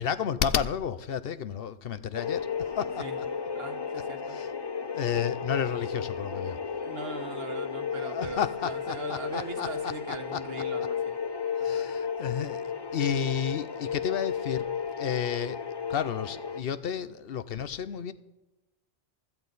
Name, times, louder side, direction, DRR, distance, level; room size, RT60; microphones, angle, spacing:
voice 1, 0.0-2.4 2.8-3.0 4.3-4.5 4.8-6.6 7.9-9.7 10.1-10.4 11.6-15.6 15.9-18.1, left 8 dB, 65° left, 14 dB, 0.8 m, -32 dB
sound 1, 2.1-16.6, left 6 dB, 30° left, 0.6 m, -33 dB
voice 2, 3.5-4.4 6.8-11.2 11.6-11.9, right 3 dB, 65° right, 6 dB, 1.6 m, -40 dB
16.0 x 13.0 x 4.0 m, 1.0 s
omnidirectional pair, 1.1 m